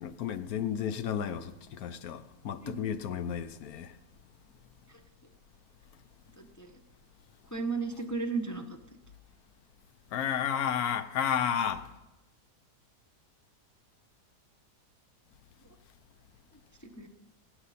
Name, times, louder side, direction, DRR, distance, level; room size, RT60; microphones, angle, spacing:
voice 1, 0.0-3.9 10.1-11.9, left 8 dB, 70° left, 1.2 m, -32 dB
voice 2, 6.4-6.7 7.5-8.8 16.8-17.1, right 4 dB, 20° left, 0.4 m, -34 dB
23.5 x 9.7 x 4.2 m
omnidirectional pair, 1.7 m